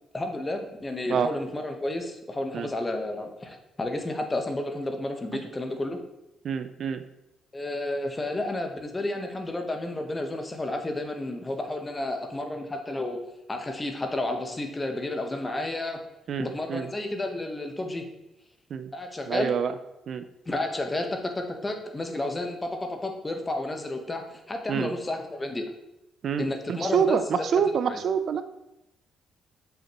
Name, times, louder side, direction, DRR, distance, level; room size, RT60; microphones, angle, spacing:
voice 1, 0.1-6.0 7.5-13.2 13.5-16.0 16.4-18.1 18.9-19.5 20.5-25.7 26.4-27.2 27.9-28.0, left 2 dB, 20° left, 5 dB, 1.0 m, -31 dB
voice 2, 6.4-7.0 16.3-16.9 18.7-18.9 19.3-19.7 20.1-20.2 24.7-24.9 26.2-28.4, right 7 dB, 60° right, 10 dB, 0.4 m, -26 dB
7.3 x 5.6 x 2.9 m, 0.89 s
cardioid pair, 90°, 0 cm